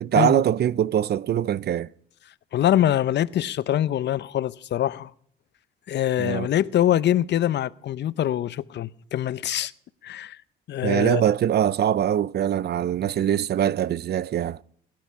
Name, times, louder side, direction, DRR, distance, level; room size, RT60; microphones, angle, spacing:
voice 1, 0.0-1.9 6.2-6.5 10.8-14.6, right 10 dB, 55° right, 0.5 m, -23 dB
voice 2, 2.5-5.1 5.9-9.7 10.0-10.4 10.7-11.2, left 11 dB, 60° left, 0.6 m, -24 dB
21.0 x 10.5 x 5.7 m
cardioid pair, 90°, 20 cm